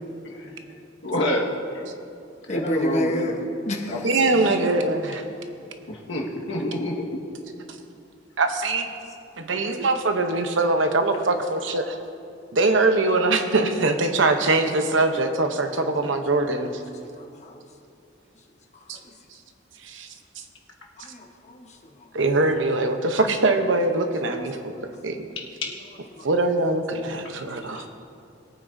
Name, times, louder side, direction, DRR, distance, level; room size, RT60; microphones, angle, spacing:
voice 1, 1.0-1.5 2.5-3.3 3.9-4.5 5.9-7.3 25.6-25.7, left 1 dB, 70° left, -1 dB, 1.6 m, -28 dB
voice 2, 2.5-4.0 17.1-17.6 19.0-19.1 21.0-21.8 24.5-24.8 26.1-26.3, equal, 40° left, 2 dB, 1.2 m, -29 dB
voice 3, 4.0-5.2 8.4-8.9 9.4-12.0 12.5-16.8 18.9-19.0 19.8-20.1 22.1-25.3 26.2-27.9, right 2 dB, 80° right, 6 dB, 0.9 m, -22 dB
20.5 x 9.1 x 2.7 m, 2.6 s
head